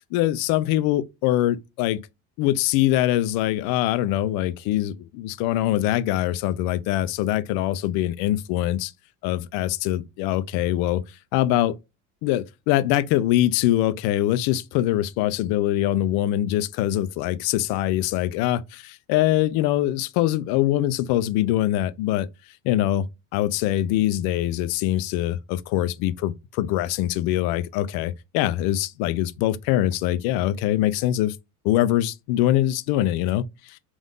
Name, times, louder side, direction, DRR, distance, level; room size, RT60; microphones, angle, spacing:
voice 1, 0.1-2.0 2.4-8.9 9.2-11.0 11.3-11.7 12.2-22.3 22.6-23.0 23.3-31.4 31.6-33.8, left 13 dB, 65° left, 0.5 m, -23 dB
3.6 x 2.6 x 3.7 m
supercardioid pair, 120°, 40 cm